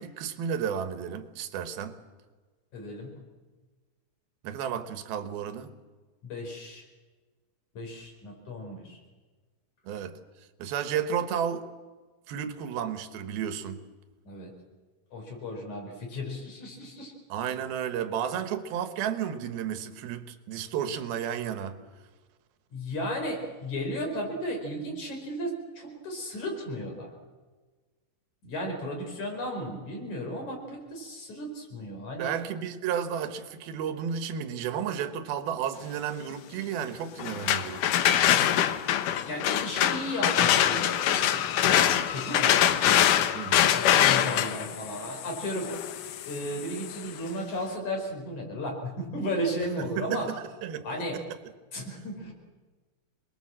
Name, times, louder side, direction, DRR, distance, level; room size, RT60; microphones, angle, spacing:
voice 1, 0.0-1.9 4.4-5.7 9.9-10.2 10.6-11.7 12.3-13.8 17.3-21.8 32.2-37.8 43.3-43.7 49.8-50.4 50.6-51.2, right 8 dB, 90° right, 10 dB, 3.2 m, -32 dB
voice 2, 2.7-3.1 6.2-6.8 7.7-9.0 14.2-14.5 15.1-17.1 22.7-27.1 28.4-32.3 39.3-42.9 43.7-45.7 46.2-50.3 50.8-51.2 51.7-52.3, equal, 55° left, 2 dB, 6.0 m, -35 dB
sound 1, 37.2-47.0, left 11 dB, 70° left, 2.3 m, -24 dB
26.5 x 21.0 x 7.6 m, 1.4 s
omnidirectional pair, 4.2 m